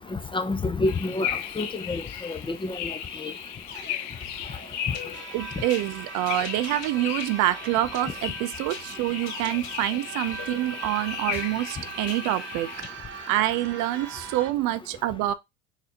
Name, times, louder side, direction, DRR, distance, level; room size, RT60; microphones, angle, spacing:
voice 1, 0.1-3.3, left 2 dB, 15° left, 0.4 m, -29 dB
sound 1, 0.8-12.8, left 10 dB, 75° left, 0.6 m, -36 dB
sound 2, 3.7-12.9, left 4 dB, 55° left, 2.1 m, -43 dB
sound 3, 5.1-14.5, right 6 dB, 30° right, 0.9 m, -41 dB
voice 2, 5.3-12.7 13.3-15.3, right 15 dB, 55° right, 0.5 m, -26 dB
4.0 x 2.7 x 2.8 m
hypercardioid pair, 80°, 36 cm